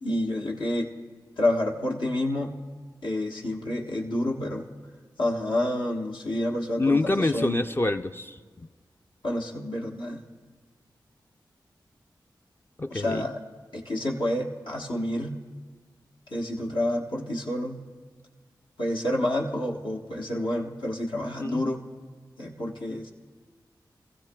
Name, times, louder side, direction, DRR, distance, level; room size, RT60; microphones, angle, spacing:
voice 1, 0.0-0.9 1.4-2.6 3.0-4.7 5.2-7.6 9.2-10.2 12.9-13.4 13.7-15.4 16.3-17.8 18.8-21.8 22.4-23.1, left 1 dB, 75° left, -2 dB, 1.2 m, -29 dB
voice 2, 6.8-8.7 12.8-13.3 21.4-21.6, left 2 dB, 25° left, 6 dB, 0.4 m, -26 dB
22.0 x 15.0 x 2.3 m, 1.5 s
cardioid pair, 40°, 8 cm